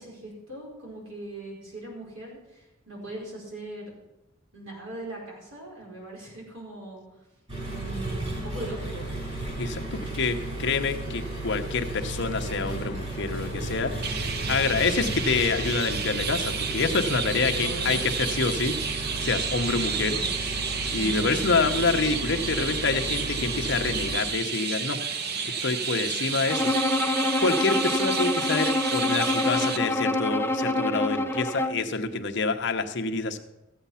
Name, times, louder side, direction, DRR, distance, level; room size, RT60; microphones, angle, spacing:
voice 1, 0.0-3.9 4.5-7.0 7.6-9.1 17.4-18.0 19.7-20.3 21.0-21.6, right 1 dB, 75° right, -3 dB, 5.1 m, -40 dB
Engine, 7.5-24.2, right 2 dB, 30° right, 6.0 m, -34 dB
voice 2, 9.6-13.9 14.5-18.7 19.2-20.2 20.9-25.0 25.4-27.1 27.4-33.4, left 4 dB, 55° left, 6 dB, 0.9 m, -27 dB
Chirp tweet, 14.0-29.8, right 6 dB, 50° right, 0.8 m, -31 dB
Bowed string instrument, 26.5-31.9, left 2 dB, 10° left, 0.6 m, -26 dB
14.5 x 8.3 x 5.7 m, 0.97 s
head